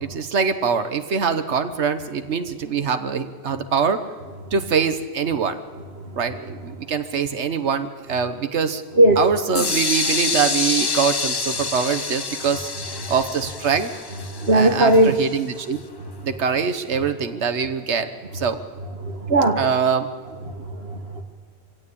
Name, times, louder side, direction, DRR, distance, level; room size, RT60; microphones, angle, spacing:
voice 1, 0.0-4.0 4.5-5.6 6.2-8.8 9.2-12.7 13.1-13.9 14.5-15.8 16.2-18.6 19.6-20.1, right 6 dB, 85° right, 8 dB, 1.4 m, -23 dB
sound 1, 9.5-15.4, left 4 dB, 25° left, 0.6 m, -27 dB
voice 2, 14.3-15.3 19.0-19.6 20.6-21.2, right 1 dB, 65° right, 1 dB, 1.8 m, -18 dB
24.5 x 16.5 x 8.7 m, 1.4 s
omnidirectional pair, 1.1 m